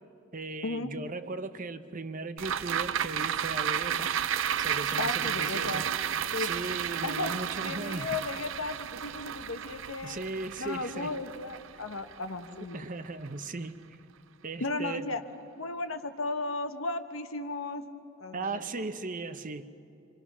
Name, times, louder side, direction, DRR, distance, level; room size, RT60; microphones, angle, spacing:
voice 1, 0.3-4.1 4.6-5.9 6.4-8.2 10.0-11.1 12.7-13.8 14.4-15.2 18.3-19.6, right 3 dB, 40° right, 10 dB, 0.8 m, -37 dB
sound 1, 2.4-12.9 13.3-13.4, right 9 dB, 65° right, 0.5 m, -32 dB
voice 2, 5.0-5.8 6.3-6.5 7.0-10.2 10.6-12.8 14.6-15.2 15.6-18.6, left 3 dB, 90° left, 7 dB, 1.3 m, -35 dB
28.0 x 25.0 x 6.1 m, 2.7 s
head